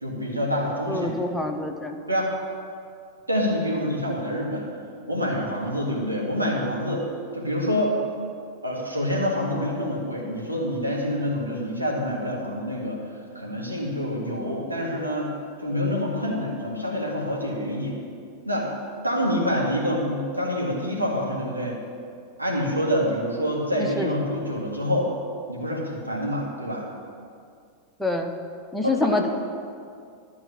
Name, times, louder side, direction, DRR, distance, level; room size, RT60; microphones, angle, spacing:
voice 1, 0.0-1.2 2.1-2.3 3.3-4.7 5.1-7.1 7.3-7.9 8.6-13.0 13.3-15.3 15.6-18.0 18.5-18.7 19.0-21.8 22.4-25.1 25.5-26.9 28.8-29.2, equal, 85° right, -3 dB, 2.2 m, -26 dB
voice 2, 0.9-2.0 23.8-24.1 28.0-28.3 28.7-29.3, left 2 dB, ahead, 1 dB, 1.0 m, -26 dB
12.0 x 4.7 x 8.4 m, 2.3 s
figure-of-eight pair, 90°, 0 cm